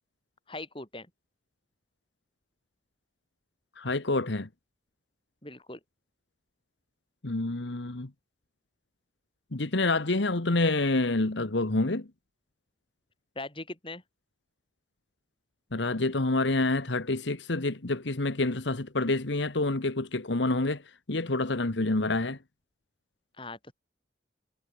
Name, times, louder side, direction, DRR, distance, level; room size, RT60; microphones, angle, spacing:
voice 1, 0.5-1.1 5.4-5.8 13.4-14.0 23.4-23.7, left 2 dB, 30° left, 6.2 m, -40 dB
voice 2, 3.8-4.5 7.2-8.1 9.5-12.1 15.7-20.8 21.1-22.4, left 2 dB, 80° left, 1.4 m, -27 dB
head